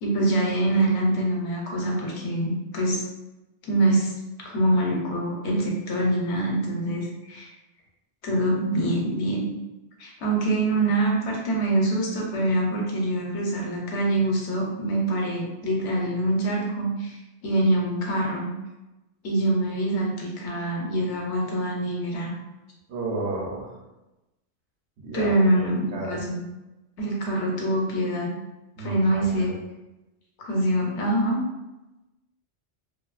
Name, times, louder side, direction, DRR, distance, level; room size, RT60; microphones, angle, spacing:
voice 1, 0.0-3.0 3.6-4.1 4.4-7.5 8.2-9.5 10.0-18.5 19.2-22.3 25.1-26.4 27.0-28.3 28.8-29.5 30.4-31.4, right 1 dB, 80° left, -1 dB, 1.0 m, -25 dB
voice 2, 22.9-23.7 25.0-26.2 28.8-29.5, right 2 dB, 70° right, -2 dB, 0.9 m, -33 dB
2.6 x 2.4 x 2.3 m, 0.99 s
omnidirectional pair, 1.2 m